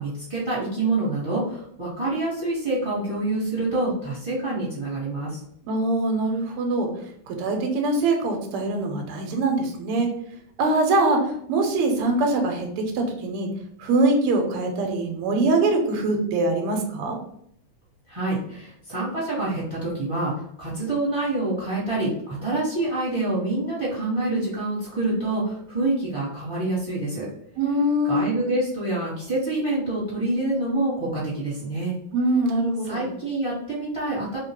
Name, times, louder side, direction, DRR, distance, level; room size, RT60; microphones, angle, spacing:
voice 1, 0.0-5.4 18.1-27.3 28.0-31.9 32.8-34.4, right 2 dB, 15° right, -7 dB, 1.2 m, -26 dB
voice 2, 5.7-10.1 10.6-13.5 13.8-17.2 27.6-28.2 32.1-33.0, right 2 dB, 90° right, 3 dB, 1.6 m, -23 dB
3.4 x 2.8 x 3.0 m, 0.70 s
omnidirectional pair, 2.4 m